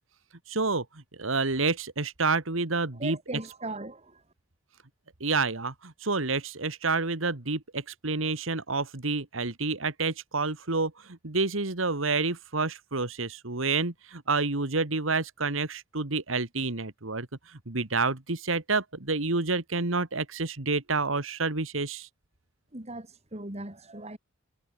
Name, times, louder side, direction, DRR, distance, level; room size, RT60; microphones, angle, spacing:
voice 1, 0.5-3.2 5.2-22.1, right 3 dB, 85° right, 2.1 m, -29 dB
voice 2, 3.0-4.2 22.7-24.2, right 2 dB, 35° right, 3.4 m, -38 dB
head